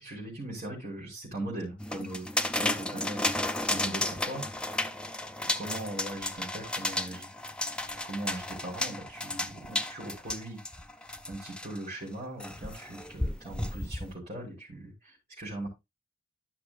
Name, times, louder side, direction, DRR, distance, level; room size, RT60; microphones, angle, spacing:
voice 1, 0.0-2.3 2.6-4.9 5.4-7.3 8.0-10.6 11.2-15.7, right 1 dB, 40° right, -5 dB, 4.3 m, -40 dB
sound 1, 1.8-11.8 12.4-14.1, left 1 dB, 5° left, 0.5 m, -33 dB
12.5 x 6.0 x 2.4 m, 0.21 s
head